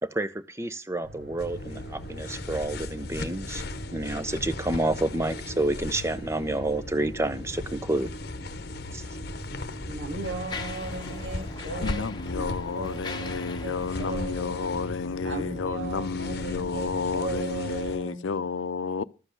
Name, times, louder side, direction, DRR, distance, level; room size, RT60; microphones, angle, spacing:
voice 1, 0.0-3.6 3.9-8.1 8.9-9.0, right 1 dB, 15° right, 0.6 m, -29 dB
sound 1, 1.0-17.2, right 1 dB, 55° right, 3.4 m, -45 dB
sound 2, 1.4-18.0, left 2 dB, 55° left, 0.9 m, -37 dB
Mechanisms, 8.8-9.0 9.7-15.5, left 4 dB, 20° left, 1.0 m, -42 dB
voice 2, 9.9-12.1 12.3-14.7 15.2-18.2, right 3 dB, 80° right, 2.7 m, -37 dB
voice 3, 11.8-19.0, left 5 dB, 85° left, 0.6 m, -31 dB
13.5 x 7.6 x 6.4 m
head